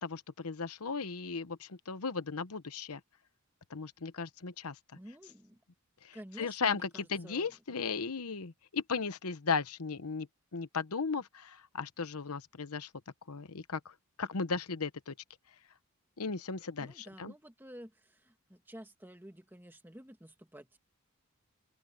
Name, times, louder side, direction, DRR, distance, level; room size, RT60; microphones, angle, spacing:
voice 1, 0.0-3.0 3.7-4.7 6.0-10.3 10.5-12.9 13.3-13.9 14.2-15.1 16.2-17.3, left 5 dB, 90° left, 1.0 m, -36 dB
voice 2, 4.9-5.6 6.1-7.5 16.8-20.8, equal, 10° right, 1.6 m, -51 dB
open air
head